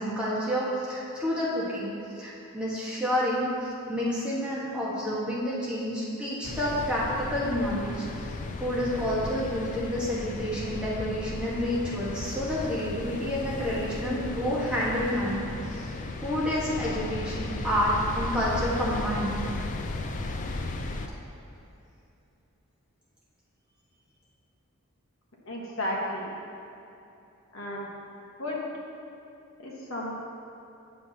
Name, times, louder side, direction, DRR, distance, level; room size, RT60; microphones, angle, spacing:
voice 1, 0.0-8.3 8.6-15.9 16.2-19.4, equal, 5° right, -8 dB, 1.2 m, -29 dB
sound 1, 6.4-21.1, left 2 dB, 35° left, 0.4 m, -35 dB
voice 2, 25.4-26.3 27.5-27.9 28.4-28.6 29.6-30.2, left 1 dB, 60° left, -3 dB, 1.2 m, -33 dB
9.2 x 6.9 x 2.8 m, 2.8 s
head